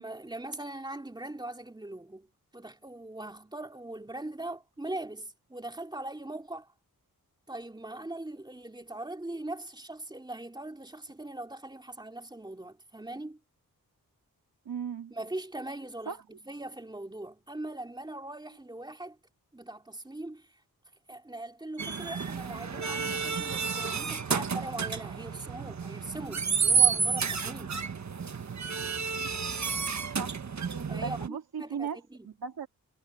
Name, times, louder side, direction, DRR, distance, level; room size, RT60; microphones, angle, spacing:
voice 1, 0.0-2.3 2.5-6.7 7.5-13.4 15.1-19.2 19.5-20.6 21.1-27.8 30.9-32.3, right 2 dB, 10° right, 2.7 m, -41 dB
voice 2, 14.6-15.1 16.1-16.2 30.1-30.4 31.0-32.0 32.2-32.7, right 6 dB, 80° right, 2.9 m, -36 dB
sound 1, 21.8-31.3, right 6 dB, 50° right, 1.4 m, -30 dB
wide cardioid pair, 95°, 36 cm